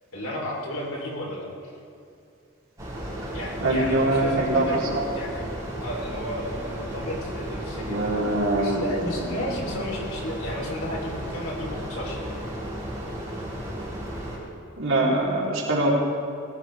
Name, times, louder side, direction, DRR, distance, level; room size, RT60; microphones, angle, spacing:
voice 1, 0.1-1.5 3.3-4.8 5.1-5.5 5.8-12.4, equal, 90° left, -1 dB, 3.3 m, -33 dB
sound 1, 2.8-14.4, equal, 15° right, 3.8 m, -34 dB
voice 2, 3.6-5.0 7.9-8.8 14.8-15.9, right 2 dB, 75° right, -4 dB, 3.3 m, -23 dB
18.5 x 15.5 x 3.4 m, 2.5 s
head